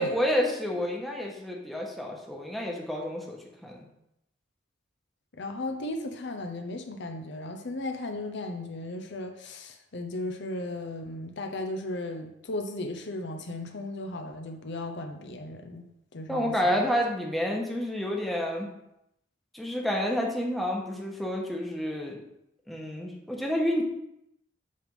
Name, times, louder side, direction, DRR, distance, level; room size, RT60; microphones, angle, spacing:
voice 1, 0.0-3.9 16.3-18.7 19.5-22.2 22.7-23.8, equal, ahead, -1 dB, 1.1 m, -29 dB
voice 2, 5.3-16.8, left 2 dB, 65° left, 5 dB, 0.7 m, -36 dB
7.7 x 3.4 x 5.3 m, 0.82 s
head